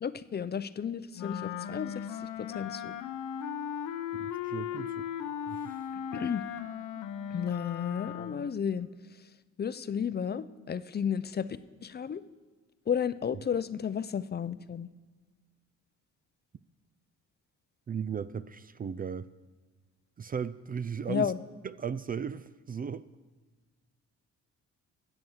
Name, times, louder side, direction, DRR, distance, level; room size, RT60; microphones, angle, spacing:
voice 1, 0.0-2.0 2.4-2.9 6.1-6.4 7.3-8.9 9.6-11.5 11.8-12.2 12.9-14.9 21.1-21.4, left 7 dB, 35° left, 0.5 m, -32 dB
Wind instrument woodwind instrument, 1.1-8.6, left 9 dB, 85° left, 0.8 m, -37 dB
voice 2, 4.1-5.1 5.4-5.8 17.9-19.3 20.2-21.3 21.6-23.1, right 6 dB, 30° right, 0.4 m, -36 dB
14.0 x 7.7 x 7.3 m
cardioid pair, 90°, 30 cm